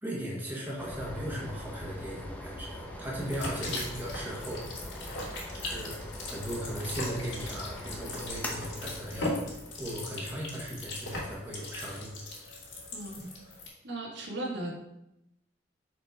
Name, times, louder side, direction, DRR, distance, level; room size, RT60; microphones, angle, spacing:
voice 1, 0.0-4.6 5.5-9.3 9.8-12.2, equal, 10° right, -4 dB, 1.4 m, -37 dB
sound 1, 0.8-13.2, equal, 10° left, 0.8 m, -43 dB
sound 2, 3.2-13.7, left 2 dB, 85° left, 2.6 m, -39 dB
voice 2, 12.9-13.3 13.8-14.7, right 1 dB, 75° right, -2 dB, 1.7 m, -36 dB
6.7 x 4.3 x 4.7 m, 0.84 s
head